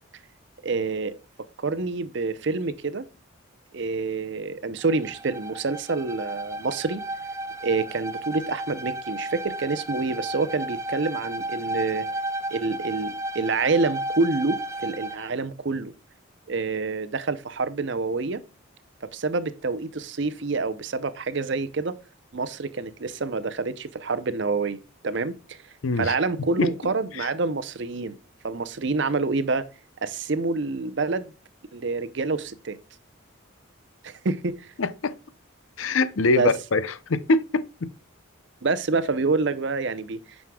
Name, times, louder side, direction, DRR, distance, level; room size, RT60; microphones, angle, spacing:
voice 1, 0.6-1.1 1.6-3.1 3.7-7.0 7.6-12.1 12.5-15.9 16.5-18.4 19.1-22.0 22.3-25.6 26.0-28.2 28.4-29.7 30.0-31.3 31.7-32.8 34.0-34.7 36.2-36.5 38.6-40.2, right 3 dB, 55° right, 0.6 m, -27 dB
Bowed string instrument, 4.8-15.3, right 1 dB, 15° right, 0.3 m, -33 dB
voice 2, 25.8-26.1 26.6-26.7 27.2-27.3 34.8-35.1 35.8-37.9, left 3 dB, 70° left, 0.6 m, -23 dB
9.3 x 6.2 x 2.3 m
head